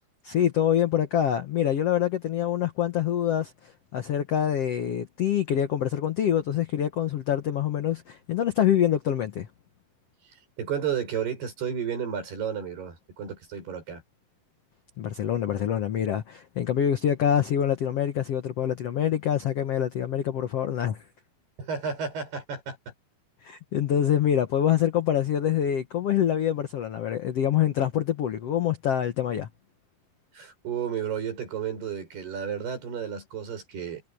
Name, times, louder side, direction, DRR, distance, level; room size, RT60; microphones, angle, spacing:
voice 1, 0.2-9.5 15.0-21.0 23.4-29.5, left 10 dB, 85° left, 1.3 m, -25 dB
voice 2, 10.6-14.0 21.6-22.8 30.3-34.0, right 7 dB, 80° right, 8.3 m, -32 dB
omnidirectional pair, 4.5 m